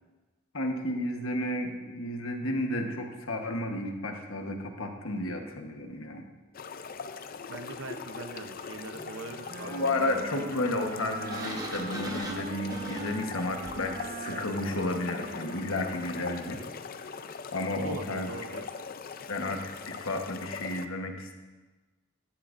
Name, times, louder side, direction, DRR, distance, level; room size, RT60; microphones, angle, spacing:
voice 1, 0.5-6.2 9.6-16.6 17.5-18.3 19.3-21.4, left 1 dB, 85° left, 4 dB, 1.3 m, -32 dB
sound 1, 6.5-20.9, left 5 dB, 45° left, 0.5 m, -41 dB
voice 2, 7.5-10.2 17.7-18.6, right 3 dB, 75° right, 7 dB, 0.8 m, -42 dB
Wind instrument woodwind instrument, 8.9-17.0, right 4 dB, 45° right, 0.6 m, -43 dB
Sliding door, 11.2-14.0, right 1 dB, 20° right, 1.1 m, -41 dB
14.5 x 11.5 x 2.6 m, 1.2 s
head